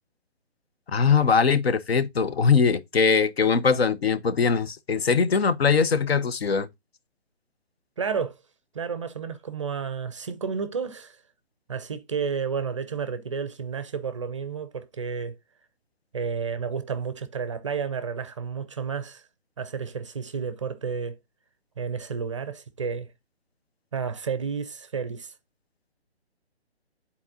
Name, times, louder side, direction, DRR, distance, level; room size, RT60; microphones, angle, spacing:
voice 1, 0.9-6.7, left 5 dB, 65° left, 0.8 m, -21 dB
voice 2, 8.0-8.4 8.7-11.2 11.7-15.4 16.1-19.2 19.6-21.2 21.8-23.1 23.9-25.3, right 6 dB, 30° right, 0.5 m, -31 dB
11.0 x 4.1 x 2.6 m
figure-of-eight pair, 145°, 33 cm